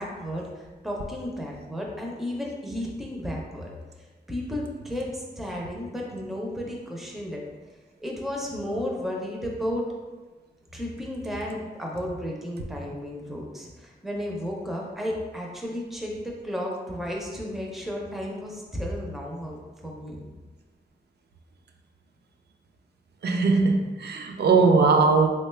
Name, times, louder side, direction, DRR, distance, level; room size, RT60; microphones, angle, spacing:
voice 1, 0.0-3.7 4.0-7.4 8.0-9.9 10.7-19.6 19.8-20.2, left 1 dB, ahead, -2 dB, 0.4 m, -33 dB
voice 2, 23.2-25.3, right 4 dB, 70° right, 3 dB, 0.4 m, -20 dB
3.5 x 2.2 x 3.1 m, 1.3 s
wide cardioid pair, 165°, 17 cm